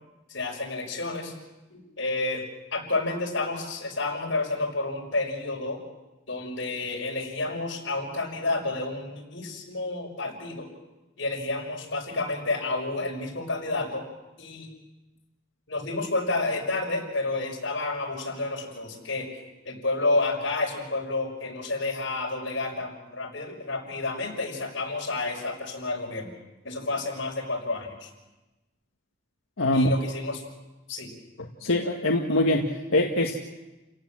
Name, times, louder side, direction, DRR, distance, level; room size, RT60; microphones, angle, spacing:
voice 1, 0.3-1.3 1.7-2.4 2.7-5.8 6.3-10.7 11.2-14.1 14.4-14.7 15.7-26.3 26.6-28.1 29.7-30.4 30.9-31.1, left 2 dB, 65° left, 0 dB, 6.0 m, -30 dB
voice 2, 29.6-29.9 31.6-33.4, left 1 dB, 90° left, 0 dB, 1.9 m, -23 dB
30.0 x 17.5 x 7.7 m, 1.1 s
head